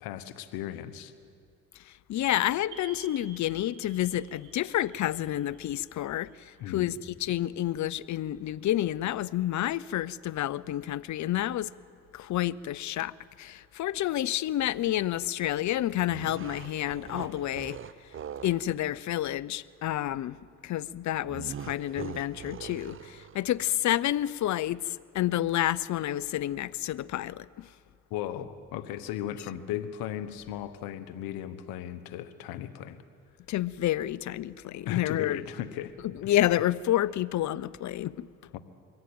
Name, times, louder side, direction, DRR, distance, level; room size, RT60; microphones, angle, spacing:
voice 1, 0.0-1.1 6.6-6.9 28.1-33.0 34.9-35.9 38.5-38.6, left 11 dB, 85° left, 1.2 m, -36 dB
voice 2, 1.9-11.7 12.1-17.8 18.4-20.4 20.6-27.7 33.5-35.4 36.0-38.3, left 13 dB, 55° left, 0.6 m, -29 dB
sound 1, 2.7-7.1, right 5 dB, 85° right, 5.1 m, -53 dB
sound 2, 16.0-18.7 21.3-23.6, right 8 dB, 35° right, 0.6 m, -42 dB
22.0 x 15.5 x 8.7 m
supercardioid pair, 70°, 35 cm